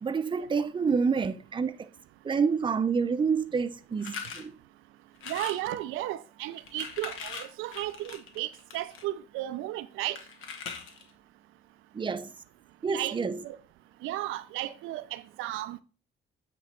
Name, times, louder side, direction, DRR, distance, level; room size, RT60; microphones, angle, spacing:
voice 1, 0.0-1.9 2.2-4.6 11.9-12.3 12.8-13.4, right 5 dB, 25° right, 0.5 m, -28 dB
sound 1, 4.0-4.4 5.2-5.6 6.5-9.0 10.2-11.1, left 6 dB, 90° left, 1.0 m, -40 dB
voice 2, 5.3-10.2 12.9-13.2 13.4-13.6 14.0-15.8, right 14 dB, 90° right, 0.4 m, -34 dB
8.4 x 3.0 x 4.3 m
cardioid pair, 90°, 20 cm